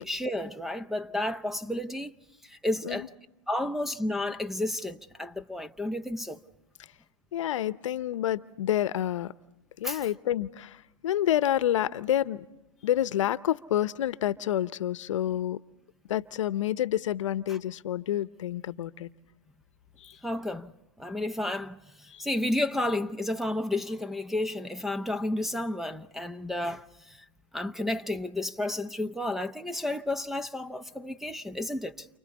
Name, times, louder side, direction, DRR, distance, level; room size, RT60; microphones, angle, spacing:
voice 1, 0.0-2.1 2.4-3.1 3.5-6.4 9.8-10.1 17.5-17.6 20.2-20.7 21.0-27.2 27.5-32.1, left 1 dB, ahead, 0.7 m, -32 dB
voice 2, 7.3-9.3 9.8-10.8 11.0-12.4 12.8-15.6 16.1-19.1 20.0-20.1 22.1-22.2, left 11 dB, 70° left, 0.9 m, -28 dB
30.0 x 29.0 x 4.2 m
hypercardioid pair, 120°, 17 cm